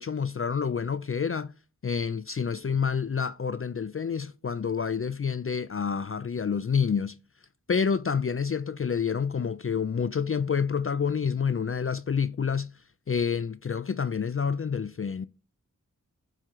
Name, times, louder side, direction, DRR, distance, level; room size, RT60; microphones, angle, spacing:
voice 1, 0.0-1.5 1.8-7.2 7.7-12.7 13.1-15.3, left 6 dB, 40° left, 0.4 m, -28 dB
12.5 x 4.6 x 3.7 m
wide cardioid pair, 40°, 34 cm